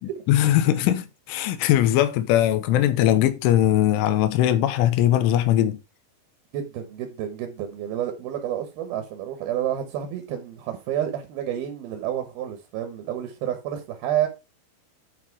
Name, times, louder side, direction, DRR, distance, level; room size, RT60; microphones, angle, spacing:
voice 1, 0.3-5.8, left 12 dB, 80° left, 3.4 m, -20 dB
voice 2, 6.5-14.3, right 11 dB, 70° right, 2.5 m, -29 dB
11.0 x 4.4 x 4.7 m
omnidirectional pair, 5.8 m